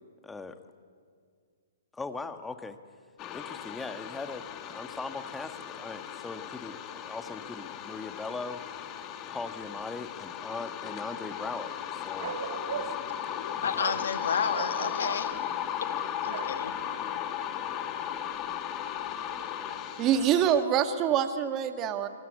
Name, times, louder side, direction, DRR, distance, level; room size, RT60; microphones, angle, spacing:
voice 1, 0.2-0.6 1.9-2.8 3.3-8.8 9.3-12.4 12.7-12.9 13.2-14.0, left 3 dB, 10° left, 8 dB, 1.6 m, -40 dB
sound 1, 3.2-20.6, left 10 dB, 30° left, 2.3 m, -36 dB
Bark, 12.2-13.1 13.8-14.1 14.5-15.3 16.3-16.6, right 7 dB, 60° right, 2.0 m, -37 dB
voice 2, 13.4-15.3 15.8-15.9 16.2-16.7, left 7 dB, 70° left, 8 dB, 2.0 m, -31 dB
voice 3, 20.0-22.1, right 9 dB, 30° right, 8 dB, 1.9 m, -25 dB
24.0 x 21.5 x 9.7 m, 2.1 s
hypercardioid pair, 130°, 0 cm